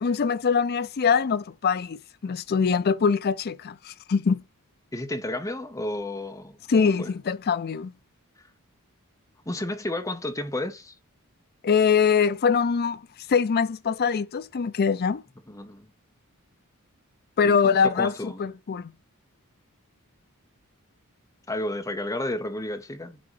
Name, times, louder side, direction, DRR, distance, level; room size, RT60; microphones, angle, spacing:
voice 1, 0.0-4.4 6.7-7.9 11.6-13.0 13.3-15.2 17.4-18.9, left 6 dB, 45° left, 0.4 m, -23 dB
voice 2, 4.9-7.1 9.4-10.9 15.5-15.9 17.4-18.5 21.5-23.2, left 1 dB, 15° left, 0.9 m, -32 dB
9.3 x 3.8 x 3.2 m
head